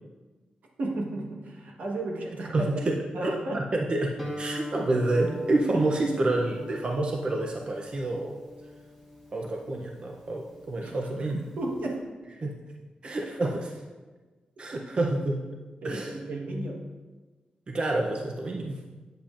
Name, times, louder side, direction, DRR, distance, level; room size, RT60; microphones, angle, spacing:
voice 1, 0.8-3.7 5.7-5.8 10.8-12.1 13.0-13.1 15.8-16.8, right 2 dB, 80° right, 0 dB, 1.2 m, -34 dB
voice 2, 2.5-3.0 3.5-8.4 9.3-11.4 12.4-12.6 13.0-13.5 14.6-15.5 15.8-16.1 17.7-18.8, right 2 dB, 40° right, 0 dB, 0.5 m, -28 dB
Guitar, 4.2-11.9, left 1 dB, 10° right, 1.1 m, -42 dB
8.5 x 7.8 x 2.5 m, 1.3 s
wide cardioid pair, 160°, 3 cm